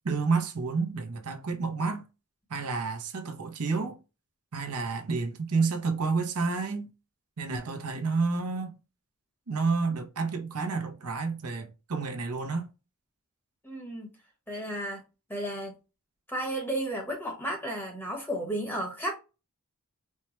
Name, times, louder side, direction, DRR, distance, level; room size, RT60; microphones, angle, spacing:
voice 1, 0.0-2.0 2.5-4.0 4.5-6.9 7.4-8.8 9.5-12.7, right 4 dB, 85° right, 0.7 m, -30 dB
voice 2, 13.6-14.1 14.5-15.0 15.3-15.7 16.3-19.2, right 1 dB, 10° left, 1.1 m, -33 dB
4.4 x 2.2 x 3.0 m
head